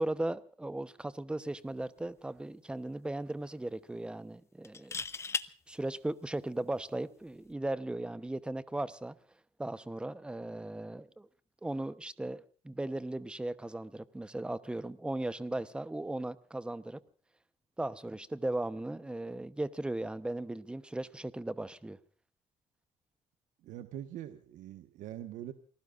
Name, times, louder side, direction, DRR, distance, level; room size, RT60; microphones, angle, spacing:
voice 1, 0.0-5.0 5.7-9.2 9.6-11.3 11.6-17.0 17.8-22.0, right 1 dB, 10° right, 1.0 m, -37 dB
sound 1, 1.8-2.0 2.4-2.5 4.6-5.5 7.3-7.5, left 4 dB, 20° left, 0.8 m, -36 dB
voice 2, 23.6-25.5, right 11 dB, 80° right, 1.4 m, -43 dB
28.5 x 19.5 x 2.5 m
cardioid pair, 135°, 13 cm